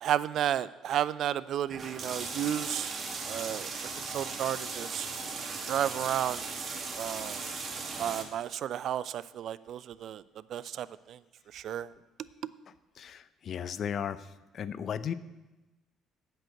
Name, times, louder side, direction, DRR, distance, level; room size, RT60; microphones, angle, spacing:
voice 1, 0.0-2.9 3.3-3.7 4.1-5.1 5.7-6.4 7.0-7.4 8.0-10.2 10.5-11.2 11.5-11.9, right 10 dB, 60° right, 17 dB, 0.4 m, -32 dB
sound 1, 1.7-8.2, right 4 dB, 45° right, 2.1 m, -37 dB
voice 2, 13.0-14.3 14.5-15.1, left 8 dB, 55° left, 15 dB, 0.6 m, -35 dB
9.0 x 7.8 x 7.8 m, 1.1 s
hypercardioid pair, 55°, 0 cm